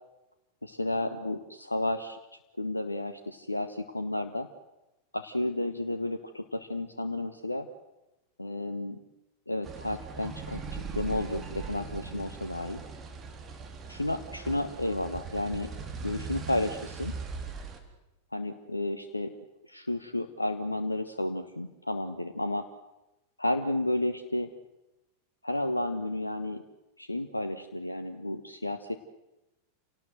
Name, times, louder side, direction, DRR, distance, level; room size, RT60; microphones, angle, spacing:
voice 1, 0.6-2.2 2.6-4.5 5.1-7.7 8.4-9.0 9.5-12.8 13.9-15.7 16.0-17.1 18.3-19.3 19.7-22.6 23.4-24.5 25.4-26.6 27.0-28.9, left 1 dB, 85° left, 8 dB, 1.2 m, -32 dB
sound 1, 9.6-17.8, right 5 dB, 25° right, 3.6 m, -40 dB
28.5 x 18.0 x 7.9 m, 0.98 s
figure-of-eight pair, 90°, 0 cm